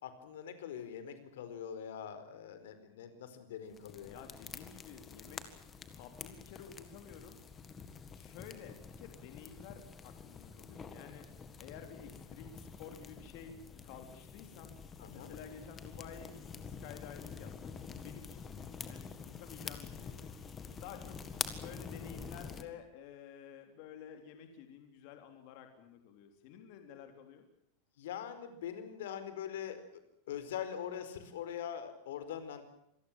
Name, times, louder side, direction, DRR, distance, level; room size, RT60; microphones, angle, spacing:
voice 1, 0.0-4.3 7.8-7.9 15.0-15.3 28.0-30.0 30.3-32.6, left 9 dB, 90° left, 10 dB, 4.6 m, -43 dB
sound 1, 3.7-22.6, left 6 dB, 15° left, 1.8 m, -47 dB
voice 2, 4.1-5.4 5.7-7.5 8.1-14.7 15.1-20.3 20.7-21.2 21.6-27.5, left 7 dB, 45° left, 6 dB, 3.5 m, -52 dB
26.5 x 19.5 x 7.5 m, 0.74 s
supercardioid pair, 175°, 0 cm